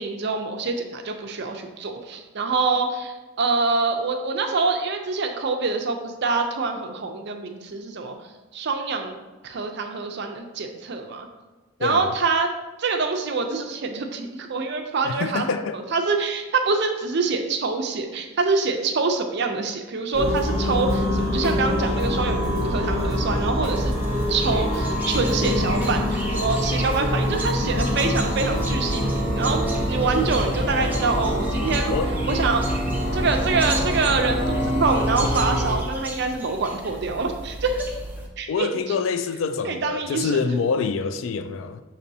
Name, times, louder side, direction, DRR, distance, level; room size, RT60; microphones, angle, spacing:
voice 1, 0.0-8.2 8.5-9.2 9.4-11.3 11.8-12.5 12.8-15.5 15.7-23.9 24.3-31.9 32.3-32.6 33.1-37.8 38.4-38.7 39.6-40.4, right 4 dB, 55° right, 0.5 m, -25 dB
voice 2, 11.8-12.1 15.0-15.8 31.9-32.1 38.5-41.8, left 5 dB, 70° left, 0.3 m, -26 dB
sound 1, 20.1-35.8, equal, 35° left, 1.0 m, -25 dB
Drum kit / Drum, 20.4-20.5 20.8-22.1 22.4-22.6 23.0-24.3 24.6-29.0, equal, 20° left, 1.4 m, -36 dB
sound 2, 23.7-38.3, right 2 dB, 10° right, 0.5 m, -36 dB
6.5 x 3.0 x 2.7 m
head